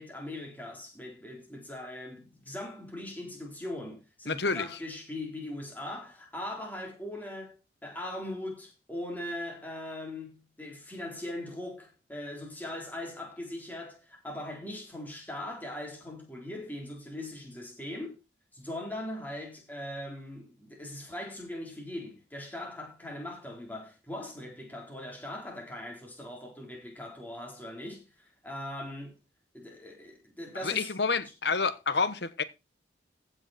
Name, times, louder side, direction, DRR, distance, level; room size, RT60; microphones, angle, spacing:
voice 1, 0.0-18.2 18.5-29.2 29.5-30.9, left 1 dB, 10° left, 3.9 m, -40 dB
voice 2, 4.3-4.7 30.6-32.4, left 4 dB, 70° left, 1.2 m, -28 dB
15.5 x 6.5 x 4.4 m
head